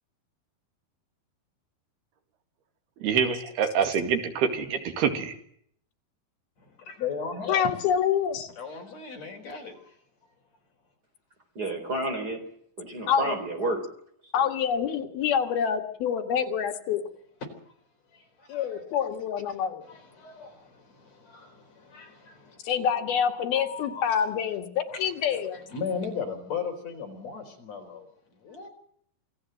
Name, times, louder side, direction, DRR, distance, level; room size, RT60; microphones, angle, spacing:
voice 1, 3.0-5.4, right 6 dB, 90° right, 6 dB, 4.3 m, -26 dB
voice 2, 6.6-7.7 8.6-10.0 17.4-17.5 18.1-18.8 19.8-22.6 23.5-24.3 24.9-25.0 25.5-28.7, left 6 dB, 45° left, 3 dB, 5.1 m, -37 dB
voice 3, 7.5-8.5 13.1-13.4 14.3-17.0 18.5-19.8 22.6-25.6, left 8 dB, 75° left, 4 dB, 3.7 m, -26 dB
voice 4, 11.5-12.4 12.8-13.8 14.2-14.3, right 2 dB, 25° right, 5 dB, 4.6 m, -30 dB
27.0 x 17.0 x 7.8 m, 0.66 s
omnidirectional pair, 4.4 m